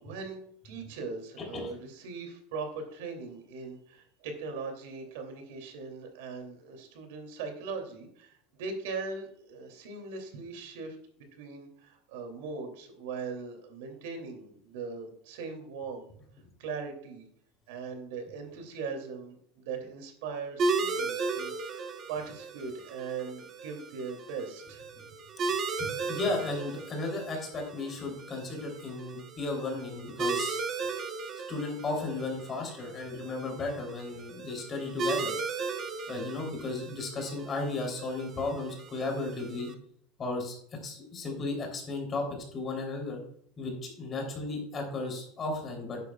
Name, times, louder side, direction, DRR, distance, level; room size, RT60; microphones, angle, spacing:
voice 1, 0.0-11.0 11.3-16.1 16.6-17.2 17.7-24.9, right 4 dB, 80° right, 5 dB, 2.7 m, -40 dB
voice 2, 1.4-1.7 25.7-30.6 31.5-35.3 36.1-39.7 40.2-40.5 40.8-43.2 43.6-46.0, left 2 dB, 25° left, 1 dB, 3.3 m, -34 dB
sound 1, 20.6-39.7, right 4 dB, 30° right, 1.0 m, -36 dB
12.0 x 9.8 x 2.3 m, 0.66 s
cardioid pair, 165°, 0 cm